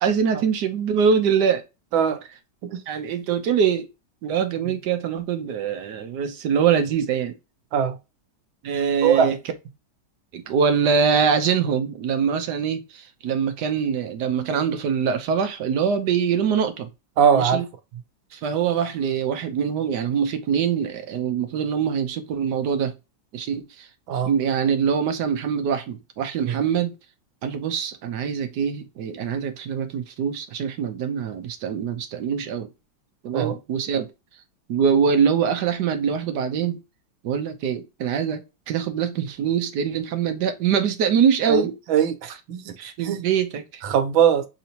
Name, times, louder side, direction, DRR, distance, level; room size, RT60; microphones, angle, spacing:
voice 1, 0.0-1.6 2.9-3.9 4.2-7.3 8.6-9.4 10.3-16.9 17.3-17.6 18.3-22.9 23.3-23.9 24.2-26.9 27.4-32.7 33.2-34.1 34.7-36.8 37.2-41.8 42.8-43.8, right 7 dB, 65° right, 1.2 m, -23 dB
voice 2, 9.0-9.4 17.2-17.6 24.1-24.3 26.5-26.6 33.3-33.5 41.5-42.8 43.0-43.2 43.8-44.5, right 8 dB, 85° right, 1.6 m, -21 dB
6.5 x 2.7 x 2.8 m
omnidirectional pair, 2.1 m